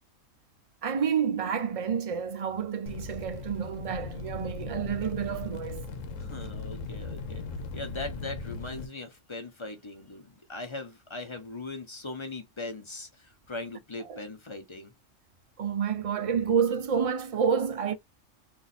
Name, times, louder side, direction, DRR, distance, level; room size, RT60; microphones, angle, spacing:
voice 1, 0.8-5.9 14.0-14.2 15.6-17.9, right 7 dB, 50° right, 0.4 m, -29 dB
sound 1, 2.9-8.9, left 3 dB, 80° left, 1.1 m, -38 dB
voice 2, 6.2-7.4 7.7-14.9, left 2 dB, 30° left, 0.7 m, -40 dB
2.6 x 2.5 x 4.1 m
omnidirectional pair, 1.3 m